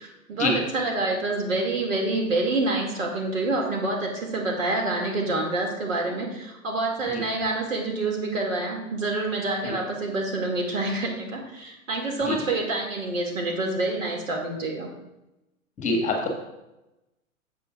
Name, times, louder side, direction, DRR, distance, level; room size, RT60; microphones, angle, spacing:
voice 1, 0.0-14.9, right 2 dB, 65° right, 0 dB, 2.4 m, -27 dB
voice 2, 15.8-16.3, left 2 dB, 15° left, 2 dB, 1.7 m, -25 dB
13.0 x 7.6 x 2.5 m, 0.95 s
figure-of-eight pair, 105°, 42 cm